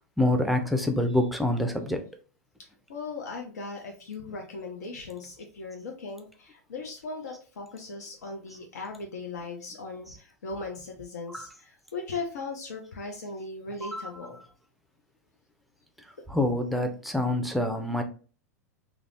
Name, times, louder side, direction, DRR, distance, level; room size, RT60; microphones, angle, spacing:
voice 1, 0.2-2.0 11.3-11.5 13.8-14.0 16.3-18.0, left 1 dB, ahead, 5 dB, 0.4 m, -26 dB
voice 2, 2.6-14.4, left 3 dB, 80° left, 2 dB, 0.6 m, -38 dB
2.3 x 2.0 x 3.3 m, 0.38 s
hypercardioid pair, 105°, 9 cm